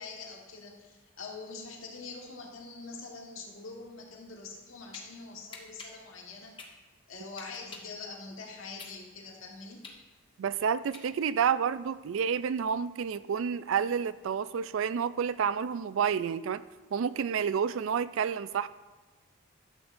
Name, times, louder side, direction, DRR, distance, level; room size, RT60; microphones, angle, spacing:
voice 1, 0.0-6.6 7.1-9.8, left 4 dB, 75° left, -1 dB, 1.6 m, -44 dB
sound 1, 4.9-5.0 5.5-8.0 8.4-11.4, left 4 dB, 25° left, 0.9 m, -48 dB
voice 2, 10.4-16.6 16.9-18.7, right 7 dB, 70° right, 16 dB, 0.3 m, -29 dB
12.0 x 8.0 x 2.6 m, 1.3 s
head